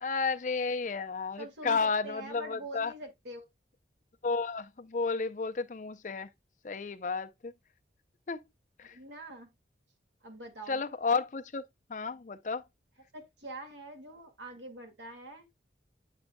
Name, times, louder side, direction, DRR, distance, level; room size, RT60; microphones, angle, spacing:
voice 1, 0.0-2.9 4.2-6.3 6.6-7.5 8.3-8.4 8.8-8.9 10.7-11.6 11.9-12.6, left 4 dB, 45° left, 0.5 m, -32 dB
voice 2, 1.4-3.5 8.8-9.5 10.2-10.8 13.1-15.5, right 1 dB, 85° right, 2.1 m, -45 dB
8.6 x 6.1 x 2.2 m
head